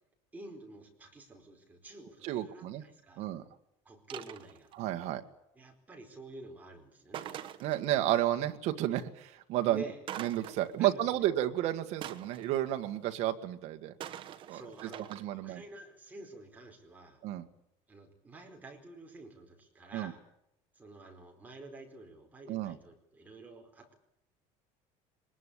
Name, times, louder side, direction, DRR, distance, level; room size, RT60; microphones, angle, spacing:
voice 1, 0.3-3.2 3.8-4.7 5.5-7.3 9.6-10.0 10.8-11.3 14.5-17.2 17.9-20.2 20.7-24.0, right 2 dB, 10° right, 2 dB, 4.6 m, -49 dB
voice 2, 2.2-2.8 3.2-3.4 4.7-5.2 7.6-9.9 10.2-13.9 14.5-15.6 17.2-17.5 19.9-20.1 22.5-22.8, right 13 dB, 60° right, 6 dB, 1.9 m, -32 dB
sound 1, 4.1-4.8 7.1-8.2 10.1-10.9 12.0-13.1 14.0-15.2, right 11 dB, 40° right, 1.3 m, -44 dB
22.5 x 21.0 x 8.5 m, 0.79 s
cardioid pair, 160°, 13 cm